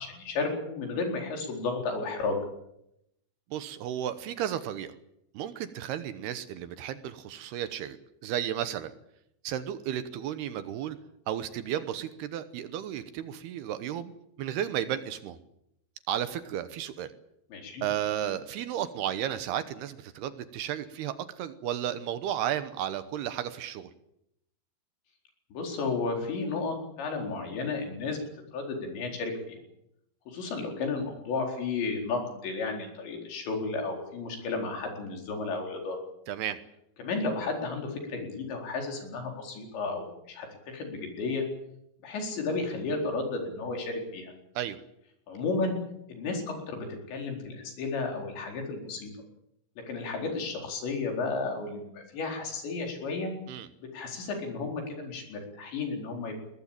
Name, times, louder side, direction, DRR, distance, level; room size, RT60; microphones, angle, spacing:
voice 1, 0.0-2.4 17.5-17.8 25.5-28.2 28.5-29.6 30.3-36.0 37.0-40.5 40.7-41.5 42.0-44.3 45.3-45.8 46.1-49.1 49.9-53.3 53.9-56.4, left 3 dB, 80° left, 2 dB, 6.6 m, -33 dB
voice 2, 3.5-4.9 5.3-8.0 8.2-8.9 9.4-11.0 11.3-14.1 14.4-15.4 16.1-17.1 17.8-23.9 36.3-36.6 44.6-44.8 53.5-53.7, right 10 dB, 75° right, 12 dB, 2.8 m, -33 dB
22.5 x 19.0 x 8.8 m, 0.81 s
omnidirectional pair, 5.1 m